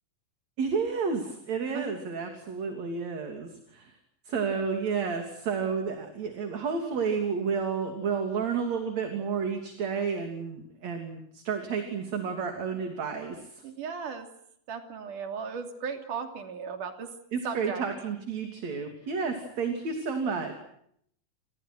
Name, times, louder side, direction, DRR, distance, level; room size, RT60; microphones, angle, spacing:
voice 1, 0.6-4.0 4.3-13.6 17.3-20.6, right 5 dB, 55° right, 5 dB, 4.1 m, -31 dB
voice 2, 13.6-14.3 14.7-17.1 17.4-17.8, right 6 dB, 75° right, 6 dB, 4.4 m, -36 dB
29.5 x 28.0 x 6.2 m, 0.69 s
omnidirectional pair, 3.7 m